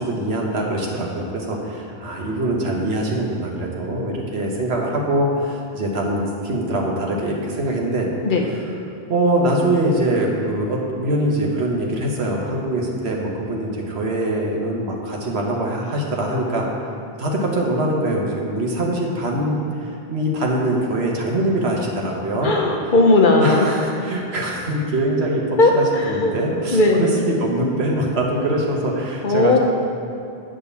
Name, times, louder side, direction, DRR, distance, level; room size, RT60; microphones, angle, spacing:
voice 1, 0.0-8.1 9.1-16.7 17.2-22.5 23.4-29.6, right 1 dB, 85° right, -1 dB, 1.4 m, -23 dB
voice 2, 22.4-23.9 25.6-26.3 26.7-27.2 29.2-29.6, left 2 dB, 55° left, 1 dB, 0.9 m, -17 dB
8.8 x 3.7 x 6.9 m, 2.6 s
omnidirectional pair, 1.0 m